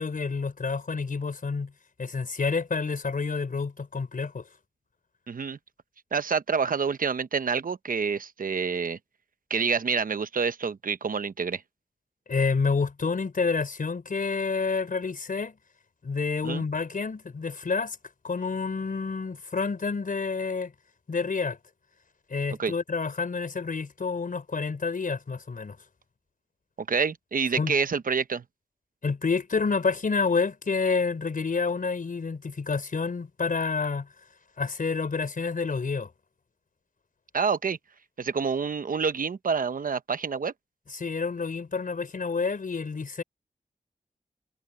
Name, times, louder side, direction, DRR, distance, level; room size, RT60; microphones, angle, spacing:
voice 1, 0.0-1.7 2.0-4.4 12.3-15.6 16.0-18.0 18.2-20.7 21.1-21.6 22.3-25.8 27.6-27.7 29.0-34.1 34.6-36.1 40.9-43.2, left 4 dB, 70° left, 4.5 m, -28 dB
voice 2, 5.3-5.6 6.1-9.0 9.5-11.6 16.4-16.6 22.6-22.7 26.9-28.4 37.3-37.8 38.2-40.5, right 5 dB, 75° right, 0.9 m, -27 dB
wide cardioid pair, 80°, 14 cm